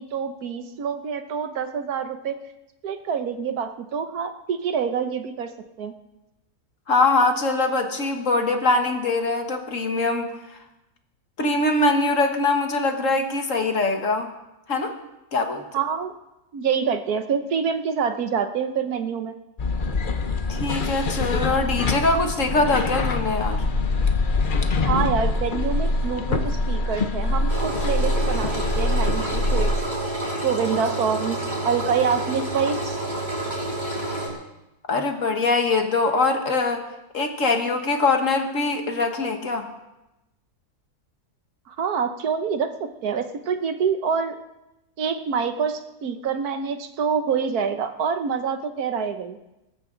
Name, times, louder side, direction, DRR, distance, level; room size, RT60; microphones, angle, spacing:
voice 1, 0.0-2.4 2.8-5.5 5.8-5.9 15.7-16.1 16.5-19.3 24.9-29.7 30.4-33.0 41.7-44.4 45.0-49.4, right 6 dB, 75° right, 8 dB, 1.5 m, -26 dB
voice 2, 6.9-10.3 11.4-14.3 14.7-14.9 15.3-15.6 20.5-23.6 34.9-36.8 37.1-39.6, left 3 dB, 55° left, 4 dB, 1.9 m, -22 dB
sound 1, 19.6-29.7, left 2 dB, 40° left, 0.9 m, -24 dB
Engine, 27.5-34.3, right 1 dB, 30° right, 6.0 m, -29 dB
20.0 x 14.5 x 3.9 m, 0.94 s
omnidirectional pair, 1.6 m